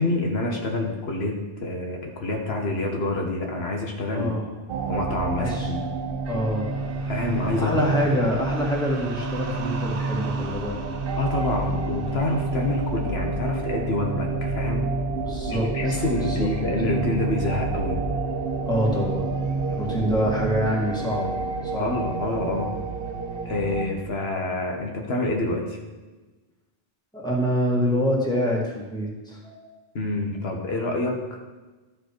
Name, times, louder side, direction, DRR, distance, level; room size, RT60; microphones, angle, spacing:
voice 1, 0.0-4.3 4.9-5.8 7.1-7.8 11.2-14.9 15.4-18.0 21.8-22.7 23.4-25.8 29.9-31.2, left 2 dB, 90° left, 1 dB, 1.5 m, -27 dB
voice 2, 4.1-4.5 5.4-5.7 6.3-6.7 7.6-10.8 15.2-16.5 18.7-19.3 19.7-21.4 21.6-21.9 27.1-29.7, equal, 5° left, -4 dB, 1.8 m, -26 dB
sound 1, 4.7-23.8, right 3 dB, 65° right, 0.9 m, -29 dB
13.0 x 4.9 x 4.5 m, 1.2 s
omnidirectional pair, 1.0 m